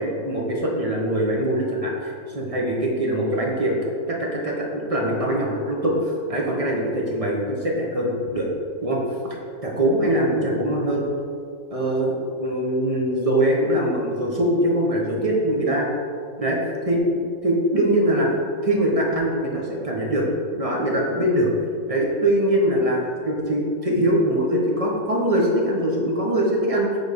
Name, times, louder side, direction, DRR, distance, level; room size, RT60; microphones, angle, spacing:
voice 1, 0.0-3.8 4.1-8.5 8.8-11.1 11.7-15.9 16.4-16.6 16.8-18.3 18.6-20.2 20.5-21.5 21.9-26.9, right 1 dB, 25° right, -2 dB, 0.9 m, -22 dB
7.4 x 4.3 x 5.2 m, 2.3 s
omnidirectional pair, 1.9 m